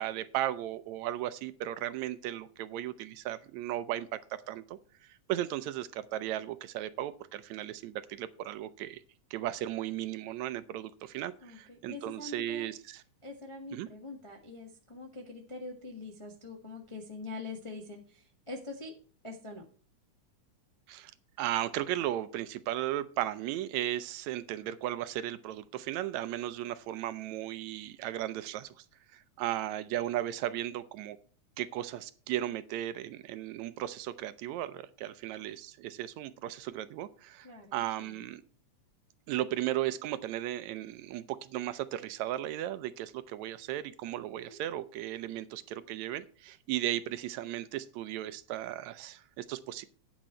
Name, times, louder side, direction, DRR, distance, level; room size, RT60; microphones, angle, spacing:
voice 1, 0.0-9.0 9.3-13.0 13.7-13.9 20.9-21.1 21.4-28.8 29.1-31.2 31.6-38.4 39.3-49.8, right 13 dB, 80° right, 14 dB, 1.8 m, -36 dB
voice 2, 11.4-12.7 13.2-18.9 19.2-19.6 37.4-38.2 44.5-44.6, left 3 dB, 45° left, 0 dB, 0.4 m, -44 dB
9.1 x 8.9 x 4.3 m, 0.42 s
omnidirectional pair, 3.4 m